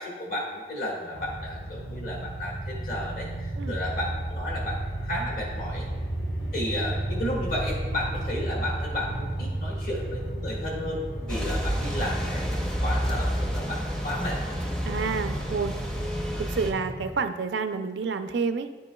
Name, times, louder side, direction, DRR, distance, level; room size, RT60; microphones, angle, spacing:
voice 1, 0.0-5.9 6.5-14.4, left 1 dB, 50° left, -3 dB, 1.6 m, -33 dB
sound 1, 1.1-17.1, right 1 dB, 75° left, 1.0 m, -33 dB
sound 2, 11.3-16.7, equal, 5° left, 0.5 m, -30 dB
voice 2, 14.8-15.7 16.4-18.7, right 5 dB, 80° right, 9 dB, 0.4 m, -29 dB
9.8 x 5.2 x 2.2 m, 1.4 s
head